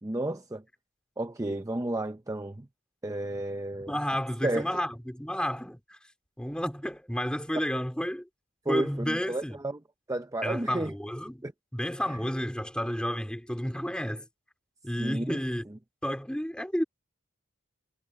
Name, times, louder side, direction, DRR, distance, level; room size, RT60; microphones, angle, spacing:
voice 1, 0.0-0.6 1.2-2.7 3.0-3.9 4.4-4.7 8.7-9.8 10.1-10.9 11.4-11.5 15.0-15.4, right 1 dB, 15° right, 0.6 m, -32 dB
voice 2, 3.9-6.0 6.4-8.3 8.7-9.6 10.4-11.4 11.7-14.3 14.8-15.7 16.0-16.8, equal, 5° left, 3.4 m, -31 dB
head